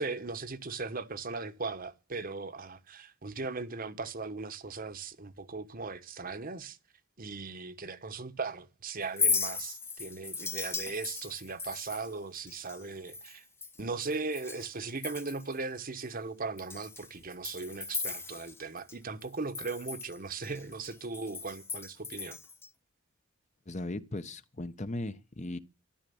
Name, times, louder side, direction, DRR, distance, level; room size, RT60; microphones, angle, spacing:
voice 1, 0.0-6.8 7.2-13.4 13.8-22.4, right 4 dB, 40° right, 1.2 m, -38 dB
Chink clink, 9.0-14.7 15.0-15.6 16.0-16.1 16.6-18.9 19.2-22.7, left 4 dB, 10° left, 0.9 m, -37 dB
voice 2, 23.7-25.6, left 2 dB, 35° left, 1.0 m, -37 dB
13.0 x 12.0 x 7.0 m
head